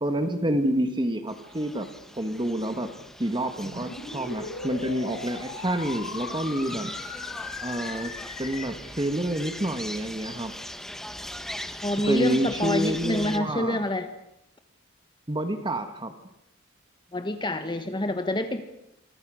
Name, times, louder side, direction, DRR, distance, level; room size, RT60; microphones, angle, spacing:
voice 1, 0.0-1.9 2.2-2.9 3.2-6.9 7.6-8.1 8.4-10.5 12.1-13.8 15.3-16.1, right 1 dB, 25° right, 8 dB, 1.6 m, -28 dB
sound 1, 1.3-13.4, equal, ahead, 1.6 m, -40 dB
sound 2, 3.6-8.6, left 4 dB, 85° left, 5.3 m, -38 dB
voice 2, 11.8-14.1 17.1-18.6, left 1 dB, 25° left, 8 dB, 1.5 m, -27 dB
28.0 x 24.5 x 6.4 m, 0.84 s
head